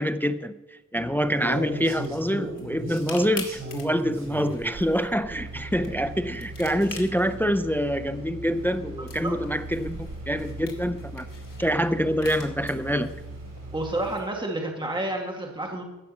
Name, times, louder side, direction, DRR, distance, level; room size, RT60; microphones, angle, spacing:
voice 1, 0.0-11.3 11.6-13.1, equal, 5° left, 0.4 m, -26 dB
sound 1, 1.0-14.1, right 2 dB, 75° right, 4.4 m, -39 dB
sound 2, 1.3-14.3, left 4 dB, 85° left, 2.5 m, -46 dB
voice 2, 13.7-15.8, right 1 dB, 15° right, 1.7 m, -30 dB
15.5 x 6.0 x 7.1 m
wide cardioid pair, 155°, 32 cm